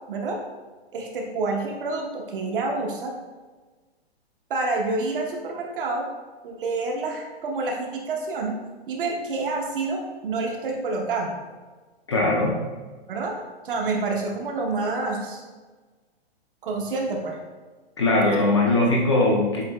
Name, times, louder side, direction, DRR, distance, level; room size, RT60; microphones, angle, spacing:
voice 1, 0.1-0.4 0.9-3.1 4.5-6.1 6.4-8.6 8.9-11.4 13.1-13.3 13.6-15.4 16.6-17.4, right 3 dB, 55° right, 1 dB, 0.9 m, -28 dB
voice 2, 12.1-12.6 18.0-19.6, left 2 dB, 30° left, -2 dB, 0.4 m, -20 dB
7.7 x 2.9 x 2.2 m, 1.3 s
hypercardioid pair, 165°, 32 cm